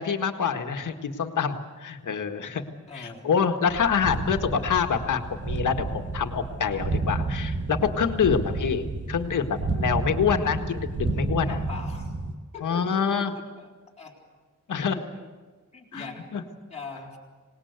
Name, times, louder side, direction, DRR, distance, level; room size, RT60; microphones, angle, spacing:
voice 1, 0.0-2.7 2.9-11.6 12.6-13.3 14.7-15.0 15.9-16.4, left 6 dB, 80° left, 6 dB, 1.8 m, -26 dB
voice 2, 2.9-3.3 8.2-8.6 11.4-12.1 12.5-13.7 14.0-14.1 14.8-15.0 15.7-16.3 16.7-17.2, left 4 dB, 20° left, -3 dB, 4.2 m, -41 dB
sound 1, 3.7-12.3, right 3 dB, 40° right, 1.5 m, -31 dB
26.0 x 19.5 x 8.2 m, 1.4 s
wide cardioid pair, 180°, 31 cm